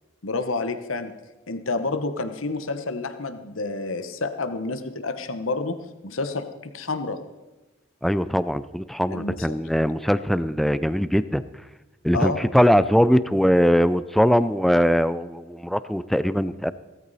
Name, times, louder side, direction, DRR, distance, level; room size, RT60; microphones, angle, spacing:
voice 1, 0.2-1.1 1.5-5.8 6.0-7.2 9.1-9.5 12.1-12.5, left 3 dB, 80° left, 10 dB, 1.1 m, -29 dB
voice 2, 8.0-11.4 12.0-16.7, equal, ahead, 15 dB, 0.4 m, -21 dB
16.5 x 14.0 x 4.1 m, 1.1 s
head